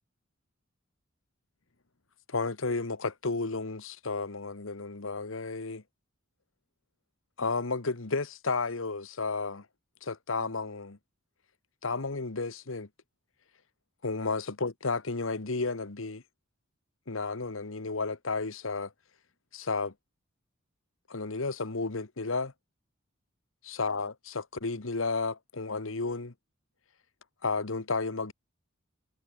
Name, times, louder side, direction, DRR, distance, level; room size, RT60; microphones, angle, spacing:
voice 1, 2.3-5.8 7.4-9.7 10.0-11.0 11.8-12.9 14.0-16.2 17.1-18.9 19.5-19.9 21.1-22.5 23.7-26.3 27.4-28.3, left 3 dB, 85° left, 1.4 m, -32 dB
head